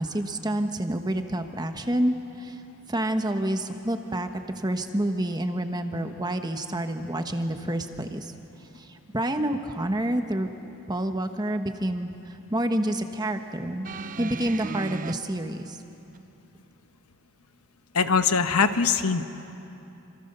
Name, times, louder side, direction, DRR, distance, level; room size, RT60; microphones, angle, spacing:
voice 1, 0.0-2.6 2.9-8.3 8.7-10.5 10.9-12.1 12.5-13.9 14.2-15.8, right 1 dB, 20° right, 6 dB, 1.1 m, -28 dB
sound 1, 13.8-15.1 16.1-16.2, right 4 dB, 35° right, 0.5 m, -35 dB
voice 2, 17.9-19.2, left 5 dB, 80° left, 9 dB, 1.1 m, -22 dB
27.0 x 26.5 x 6.8 m, 2.9 s
head